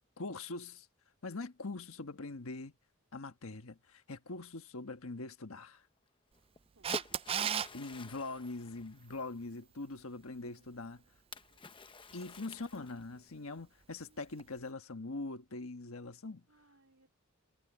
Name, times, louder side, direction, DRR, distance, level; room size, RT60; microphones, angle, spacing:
voice 1, 0.2-0.9 1.2-2.7 3.1-5.8 7.7-11.0 12.1-16.4, left 3 dB, 70° left, 1.3 m, -43 dB
Splash splatter, 6.3-9.5 11.3-13.2, left 3 dB, 25° left, 0.9 m, -49 dB
voice 2, 6.7-7.2 7.6-7.8 9.5-12.9 13.2-13.3 14.1-14.2 16.5-17.1, right 2 dB, 70° right, 3.5 m, -70 dB
Camera, 6.8-7.7 14.4-14.5, right 8 dB, 25° right, 0.3 m, -33 dB
head